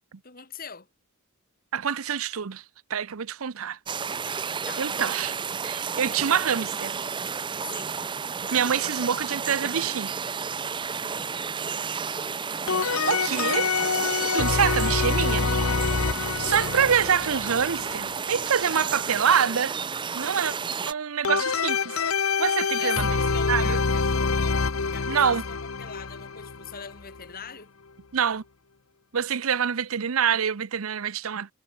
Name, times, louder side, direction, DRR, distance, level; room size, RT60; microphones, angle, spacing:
voice 1, 0.2-0.9 4.7-4.9 7.6-8.0 13.2-14.0 16.5-16.8 22.8-24.7 24.9-27.7, left 7 dB, 45° left, 3.7 m, -41 dB
voice 2, 1.7-2.6 2.9-3.8 4.2-5.4 5.6-7.0 8.5-10.2 13.1-13.7 14.3-15.5 16.4-19.8 20.1-20.5 20.9-21.9 22.4-23.1 23.5-23.8 25.1-25.4 28.1-28.4 29.1-31.5, right 7 dB, 85° right, 0.7 m, -26 dB
sound 1, 3.9-20.9, right 6 dB, 25° right, 0.5 m, -32 dB
sound 2, 12.7-18.3 21.2-27.3, left 4 dB, 90° left, 1.1 m, -26 dB
head